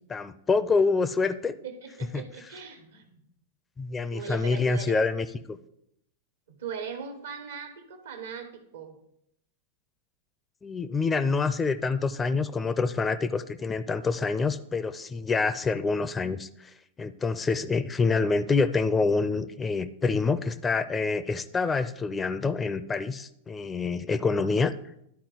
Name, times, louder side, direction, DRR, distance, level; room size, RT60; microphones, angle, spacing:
voice 1, 0.1-1.5 2.1-2.2 3.8-5.6 10.6-16.7 17.0-24.7, left 4 dB, 20° left, 14 dB, 0.4 m, -26 dB
voice 2, 1.6-3.2 4.1-5.1 6.5-9.0, right 6 dB, 75° right, 6 dB, 1.2 m, -39 dB
11.5 x 4.2 x 3.9 m, 0.77 s
hypercardioid pair, 100°, 0 cm